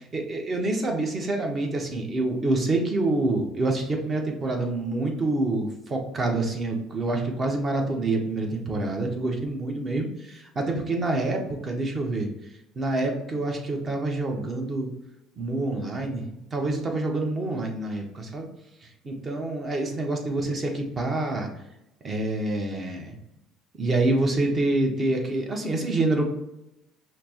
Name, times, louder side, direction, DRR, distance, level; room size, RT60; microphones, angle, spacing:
voice 1, 0.1-12.3 12.7-14.9 15.4-18.5 18.8-21.5 22.0-23.2 23.8-26.2, right 2 dB, 30° right, 2 dB, 0.9 m, -27 dB
5.7 x 2.1 x 2.9 m, 0.88 s
supercardioid pair, 105°, 0 cm